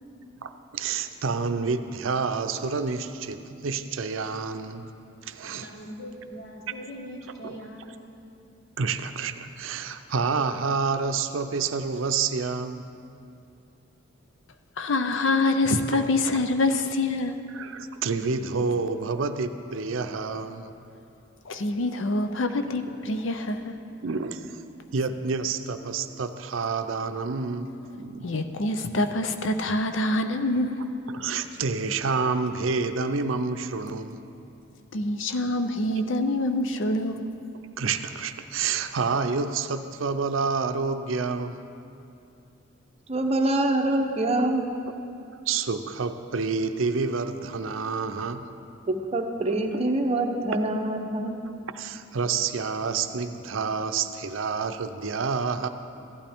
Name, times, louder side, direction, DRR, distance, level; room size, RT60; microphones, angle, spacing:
voice 1, 0.4-4.9 5.2-5.7 7.4-7.7 8.8-12.8 16.3-16.4 17.5-20.7 24.0-24.6 24.9-28.3 31.1-34.2 37.8-41.6 45.3-48.5 51.7-55.7, right 4 dB, 75° right, 8 dB, 0.5 m, -28 dB
voice 2, 5.6-8.1, equal, 50° left, 0 dB, 1.4 m, -41 dB
voice 3, 14.8-17.3 21.5-23.7 28.2-30.8 34.9-37.3, left 2 dB, 70° left, 7 dB, 0.6 m, -25 dB
voice 4, 43.1-44.7 48.9-51.3, right 1 dB, 30° right, 3 dB, 0.8 m, -25 dB
15.0 x 11.5 x 3.5 m, 2.7 s
head